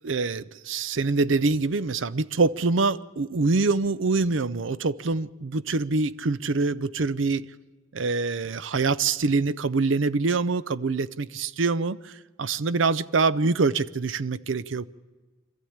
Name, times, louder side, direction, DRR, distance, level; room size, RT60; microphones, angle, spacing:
voice 1, 0.0-7.5 7.9-14.8, right 3 dB, 80° right, 0.6 m, -25 dB
25.5 x 14.0 x 8.7 m
head